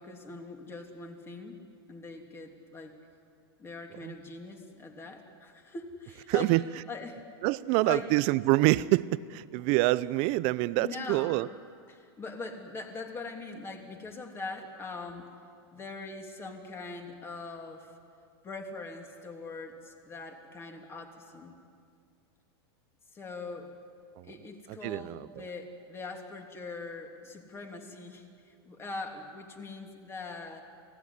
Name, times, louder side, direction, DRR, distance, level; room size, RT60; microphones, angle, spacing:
voice 1, 0.0-1.6 1.9-2.9 3.6-6.5 6.9-7.2 7.8-8.1 10.8-11.4 11.9-15.3 15.7-17.9 18.4-21.6 23.1-23.7 24.2-30.6, left 3 dB, 20° left, 3 dB, 3.0 m, -42 dB
voice 2, 6.3-6.6 7.4-11.5 24.2-24.3 24.7-25.4, right 19 dB, 45° right, 18 dB, 0.7 m, -26 dB
28.5 x 18.5 x 9.9 m, 2.3 s
supercardioid pair, 140°, 14 cm